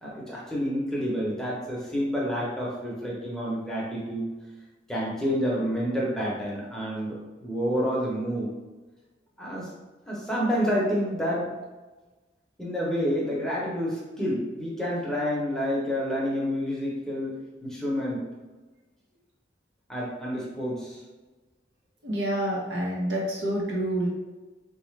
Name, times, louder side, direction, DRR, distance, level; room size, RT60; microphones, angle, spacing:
voice 1, 0.0-4.3 4.9-8.5 9.4-9.7 10.1-11.6 12.6-18.2 19.9-21.0, equal, 5° left, -6 dB, 0.8 m, -29 dB
voice 2, 22.0-24.1, right 1 dB, 90° right, -3 dB, 1.0 m, -28 dB
3.9 x 2.4 x 3.2 m, 1.2 s
head